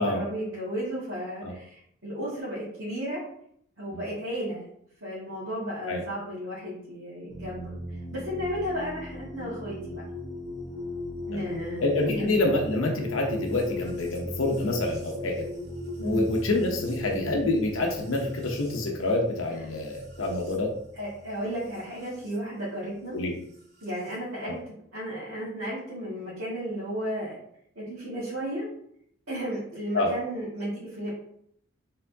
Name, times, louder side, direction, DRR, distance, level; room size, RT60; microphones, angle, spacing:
voice 1, 0.0-3.2 3.8-4.6 5.0-7.7 8.1-10.0 11.3-11.8 12.1-12.2 16.0-16.3 20.9-23.2 23.8-24.6 24.9-27.4 27.8-28.7 29.3-31.1, equal, 80° right, -11 dB, 1.8 m, -34 dB
sound 1, 7.3-22.4 23.5-24.2, left 2 dB, 55° right, 1.3 m, -39 dB
voice 2, 11.8-15.4 16.0-20.7 23.1-23.4 24.4-24.6 29.9-30.1, left 2 dB, 85° left, 1 dB, 0.7 m, -27 dB
4.3 x 3.6 x 2.7 m, 0.69 s
head